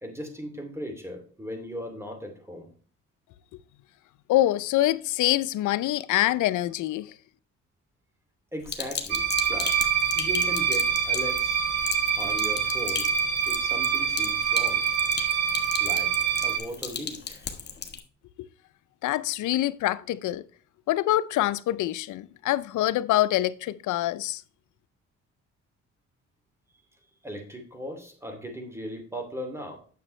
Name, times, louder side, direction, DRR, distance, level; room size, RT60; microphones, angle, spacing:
voice 1, 0.0-2.7 8.5-9.9 10.1-11.6 12.2-13.1 13.5-14.8 15.8-17.5 27.2-29.8, equal, 10° right, 2.6 m, -38 dB
voice 2, 4.3-7.1 19.0-20.4 20.9-24.4, left 15 dB, 80° left, 0.6 m, -25 dB
Sink (filling or washing), 8.7-18.0, left 6 dB, 35° left, 1.4 m, -37 dB
sound 1, 9.1-16.6, right 7 dB, 60° right, 1.7 m, -25 dB
9.3 x 6.9 x 3.2 m
cardioid pair, 90°, 30 cm